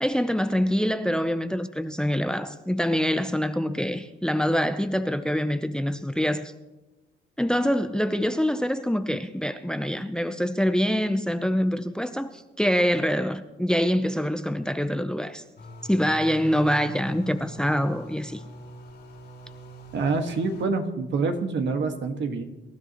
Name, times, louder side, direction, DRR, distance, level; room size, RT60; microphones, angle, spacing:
voice 1, 0.0-6.5 7.4-15.4 15.9-18.4, equal, 5° left, 0.7 m, -25 dB
sound 1, 15.6-20.6, right 1 dB, 60° left, 2.9 m, -43 dB
voice 2, 19.9-22.4, right 4 dB, 65° right, 1.7 m, -26 dB
26.0 x 12.5 x 3.1 m
cardioid pair, 90°, 20 cm